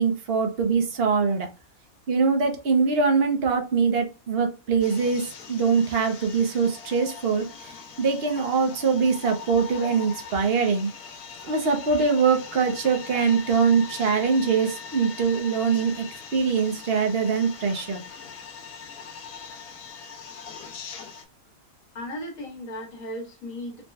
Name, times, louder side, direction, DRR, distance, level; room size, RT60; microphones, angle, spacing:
voice 1, 0.0-1.5 2.1-10.9 11.4-16.1 16.3-18.0, right 5 dB, 50° right, 0.9 m, -23 dB
sound 1, 4.8-21.2, left 6 dB, 90° left, 1.2 m, -41 dB
voice 2, 21.9-23.8, left 1 dB, 70° left, 1.7 m, -36 dB
4.2 x 2.2 x 3.2 m
omnidirectional pair, 1.5 m